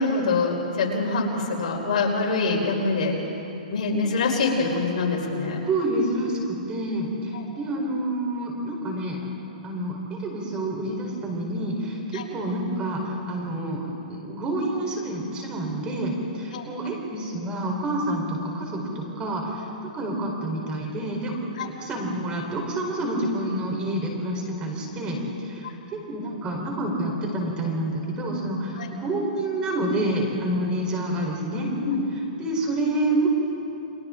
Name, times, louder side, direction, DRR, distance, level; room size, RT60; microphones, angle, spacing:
voice 1, 0.0-3.2 3.7-5.6 7.3-7.4 12.1-12.2 16.5-16.6 21.6-21.7 25.6-25.7 28.8-28.9 31.8-32.0, left 3 dB, 65° left, -1 dB, 4.5 m, -25 dB
voice 2, 5.6-9.2 9.6-19.7 19.9-21.3 21.6-25.7 26.1-31.7 32.4-33.3, right 1 dB, 20° right, 0 dB, 4.2 m, -28 dB
30.0 x 23.5 x 3.9 m, 3.0 s
hypercardioid pair, 150°, 4 cm